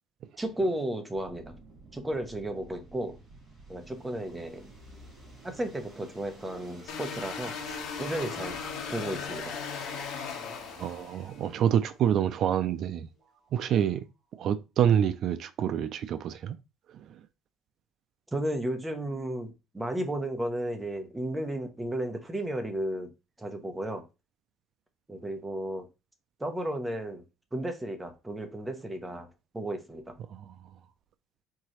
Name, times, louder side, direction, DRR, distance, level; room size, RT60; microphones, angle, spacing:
voice 1, 0.4-1.6 1.9-3.2 3.7-4.7 5.4-8.6 8.9-9.5 18.3-23.1 23.4-24.0 25.1-25.9 26.4-27.2 27.5-30.2, right 1 dB, 10° right, 0.8 m, -33 dB
sound 1, 1.1-14.0, right 1 dB, 25° right, 2.9 m, -52 dB
sound 2, 6.9-11.4, left 6 dB, 80° left, 1.2 m, -37 dB
voice 2, 10.8-13.1 13.5-14.1 14.4-16.6 16.9-17.3 30.3-30.8, right 9 dB, 50° right, 0.3 m, -27 dB
4.6 x 3.8 x 3.1 m
cardioid pair, 165°, 0 cm